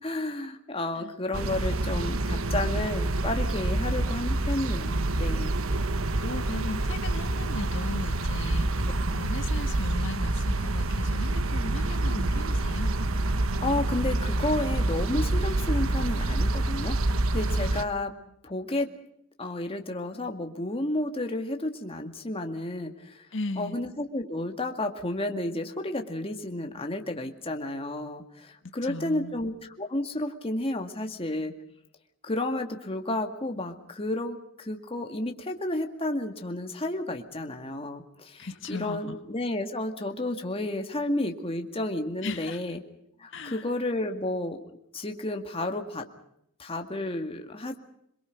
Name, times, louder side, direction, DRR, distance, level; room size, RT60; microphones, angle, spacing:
voice 1, 0.0-5.5 13.6-18.1 18.4-18.9 19.4-23.3 23.6-31.5 32.2-42.8 43.2-44.6 44.9-46.1 46.6-47.8, left 1 dB, 30° left, 4 dB, 2.1 m, -31 dB
sound 1, 1.3-17.8, right 2 dB, 90° right, 1.2 m, -27 dB
voice 2, 6.2-12.9 23.3-23.8 28.8-29.3 38.4-39.2 42.2-42.6 43.3-43.7, left 2 dB, 65° left, 7 dB, 1.8 m, -37 dB
27.5 x 22.5 x 5.3 m, 0.73 s
head